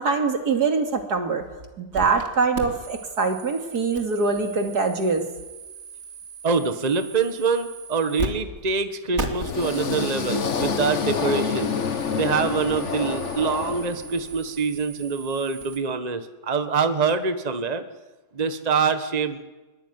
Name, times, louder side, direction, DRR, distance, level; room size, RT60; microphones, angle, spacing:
voice 1, 0.0-1.4 1.8-5.2, right 4 dB, 75° right, 5 dB, 3.1 m, -23 dB
sound 1, 1.9-2.3 2.5-8.3 8.5-8.6 9.1-15.8, right 3 dB, 45° right, 3.1 m, -38 dB
voice 2, 6.4-11.7 12.1-17.8 18.3-19.4, right 5 dB, 25° right, 9 dB, 1.5 m, -25 dB
sound 2, 9.2-14.4, left 6 dB, 50° left, 1.4 m, -28 dB
23.0 x 22.5 x 9.6 m, 1.2 s
omnidirectional pair, 1.7 m